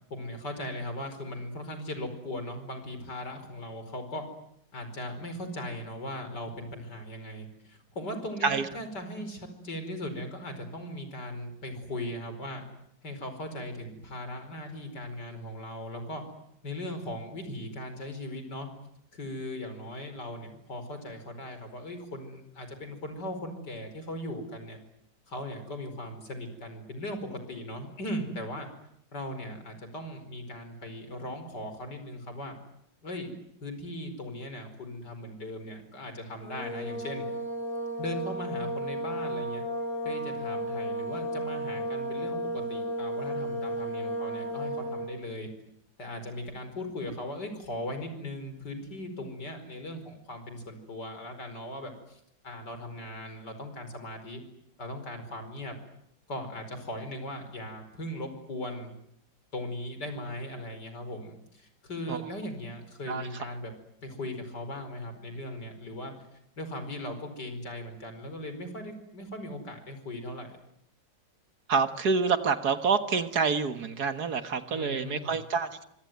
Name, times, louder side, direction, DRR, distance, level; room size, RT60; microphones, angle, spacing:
voice 1, 0.1-4.2 4.7-12.6 13.0-16.2 16.6-18.7 19.1-24.8 25.3-28.7 29.1-32.5 33.0-33.3 33.6-37.3 38.0-39.6 40.0-45.5 46.0-54.4 54.8-55.8 56.3-58.9 59.5-63.7 64.0-66.1 66.6-70.6 74.7-75.4, left 1 dB, 60° left, 8 dB, 5.5 m, -38 dB
sound 1, 36.4-45.1, right 1 dB, 5° right, 6.0 m, -33 dB
voice 2, 71.7-75.8, right 5 dB, 55° right, 10 dB, 2.0 m, -27 dB
25.5 x 25.0 x 9.4 m, 0.73 s
omnidirectional pair, 2.0 m